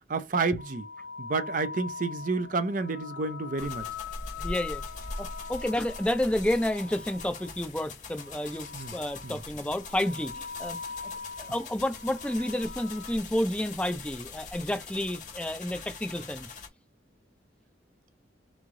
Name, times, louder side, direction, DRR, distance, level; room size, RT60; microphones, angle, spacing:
voice 1, 0.1-0.9 1.2-3.9 8.7-8.9 9.2-9.4, right 3 dB, 45° right, 0.5 m, -30 dB
sound 1, 0.6-7.6 8.1-9.5 9.8-13.2, left 5 dB, 65° left, 0.8 m, -42 dB
sound 2, 3.6-16.7, left 3 dB, 45° left, 1.2 m, -43 dB
voice 2, 4.4-4.8 5.2-10.8 11.0-11.1 11.4-16.5, left 1 dB, 5° left, 0.5 m, -30 dB
3.5 x 3.1 x 3.7 m
head